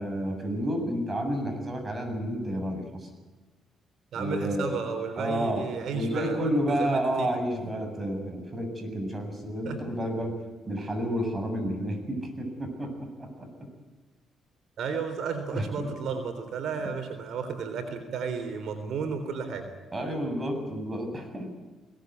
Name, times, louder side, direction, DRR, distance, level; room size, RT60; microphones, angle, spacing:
voice 1, 0.0-3.1 4.1-4.7 5.2-5.7 5.9-10.4 10.7-13.5 15.5-15.9 19.9-21.5, equal, 25° right, 5 dB, 7.8 m, -30 dB
voice 2, 4.1-7.3 9.6-9.8 14.8-19.7, right 5 dB, 70° right, 6 dB, 3.6 m, -33 dB
22.5 x 18.5 x 9.5 m, 1.3 s
cardioid pair, 90°, 0 cm